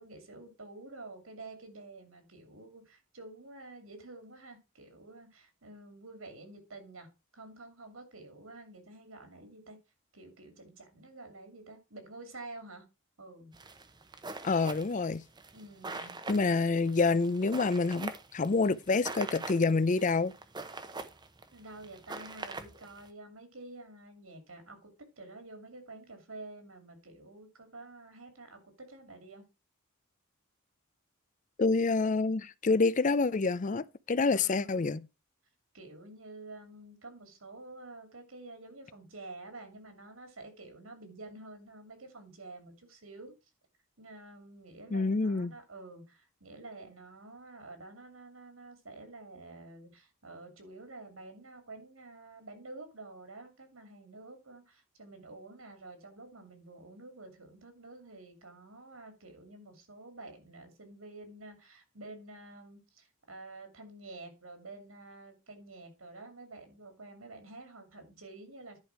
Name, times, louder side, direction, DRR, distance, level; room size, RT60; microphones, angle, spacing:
voice 1, 0.0-7.1 7.3-9.8 10.1-12.9 13.2-13.6 15.5-16.2 21.5-24.9 25.2-29.4 34.3-34.8 35.7-43.3 44.0-68.8, right 2 dB, 75° right, 2.6 m, -49 dB
sound 1, 13.5-23.1, right 3 dB, 20° right, 0.8 m, -43 dB
voice 2, 14.4-15.2 16.3-20.3 31.6-35.0 44.9-45.5, left 3 dB, 35° left, 0.5 m, -27 dB
10.5 x 5.1 x 4.6 m
head